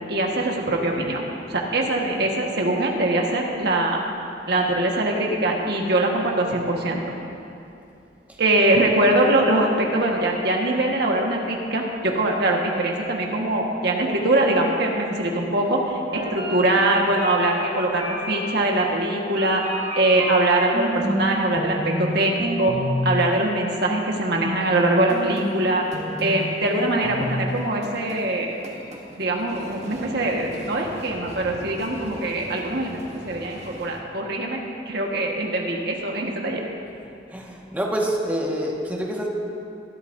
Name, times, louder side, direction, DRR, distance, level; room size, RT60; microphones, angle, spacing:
voice 1, 0.1-1.2 1.5-4.0 4.5-7.0 8.4-19.6 19.9-22.7 23.0-25.9 26.2-28.6 29.2-33.0 33.2-34.6 34.8-36.6, right 1 dB, 65° right, 0 dB, 1.4 m, -22 dB
sound 1, 16.1-21.3 21.6-22.2 22.4-23.1 25.1-34.0, equal, 40° right, 1.5 m, -32 dB
voice 2, 37.3-39.3, equal, 10° right, -3 dB, 1.5 m, -27 dB
23.0 x 12.5 x 2.6 m, 2.6 s
head